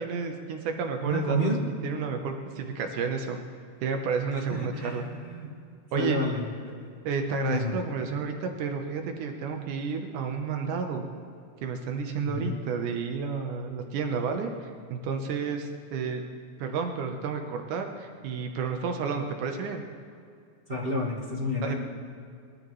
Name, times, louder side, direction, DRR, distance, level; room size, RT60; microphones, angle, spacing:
voice 1, 0.0-1.5 1.8-3.4 3.8-5.1 5.9-6.2 7.1-11.0 11.6-16.2 16.6-19.8 21.6-21.7, right 5 dB, 80° right, 4 dB, 2.5 m, -31 dB
voice 2, 1.0-1.6 4.5-5.5 5.9-6.8 7.3-7.8 12.2-12.6 20.7-21.7, equal, 55° right, -5 dB, 0.6 m, -30 dB
20.5 x 13.0 x 3.1 m, 2.4 s
omnidirectional pair, 3.6 m